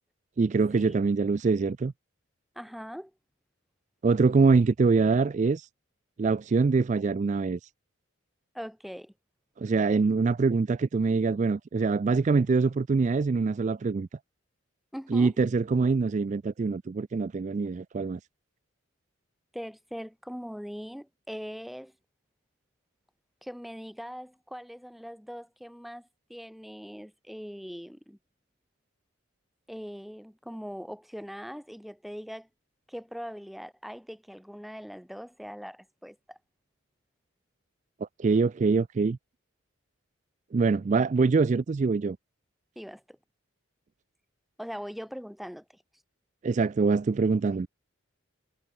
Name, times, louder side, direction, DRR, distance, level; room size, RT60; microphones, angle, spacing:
voice 1, 0.4-1.9 4.0-5.7 6.2-7.6 9.6-14.1 15.1-18.2 38.2-39.2 40.5-42.2 46.4-47.7, right 4 dB, 35° right, 0.3 m, -24 dB
voice 2, 2.6-3.1 8.5-9.1 14.9-15.4 19.5-21.9 23.4-28.2 29.7-32.5 32.9-36.4 42.8-43.2 44.6-45.8, equal, ahead, 2.4 m, -41 dB
head